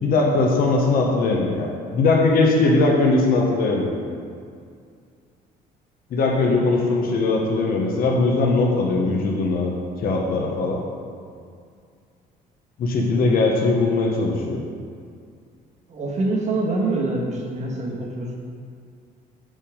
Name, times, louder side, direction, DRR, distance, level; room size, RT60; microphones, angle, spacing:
voice 1, 0.0-4.0 6.1-9.7 10.0-10.8 12.8-14.6, left 3 dB, 60° left, 0 dB, 0.9 m, -20 dB
voice 2, 15.9-18.3, right 2 dB, 45° right, -2 dB, 1.4 m, -25 dB
5.5 x 5.3 x 4.9 m, 2.3 s
cardioid pair, 110°, 17 cm